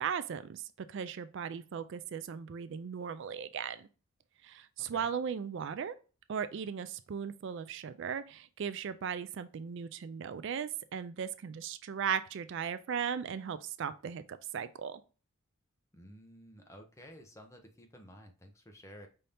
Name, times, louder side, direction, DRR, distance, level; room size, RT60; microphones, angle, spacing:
voice 1, 0.0-3.9 4.4-5.9 6.3-15.0, right 7 dB, 60° right, 0.4 m, -37 dB
voice 2, 4.8-5.1 15.9-19.1, equal, 15° left, 0.8 m, -53 dB
5.5 x 2.8 x 3.3 m
head